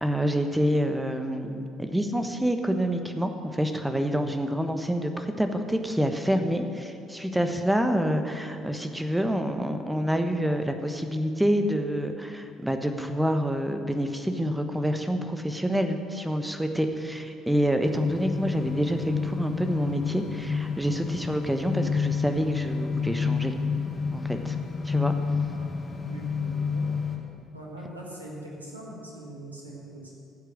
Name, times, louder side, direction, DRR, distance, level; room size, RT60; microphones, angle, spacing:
voice 1, 0.0-23.5 24.1-24.5 24.8-25.1, equal, 5° right, 6 dB, 1.2 m, -27 dB
sound 1, 17.8-27.2, left 5 dB, 25° left, 2.0 m, -29 dB
voice 2, 26.0-26.9 27.5-30.1, right 1 dB, 85° right, -3 dB, 1.9 m, -42 dB
14.5 x 8.2 x 6.3 m, 2.5 s
figure-of-eight pair, 50°, 0 cm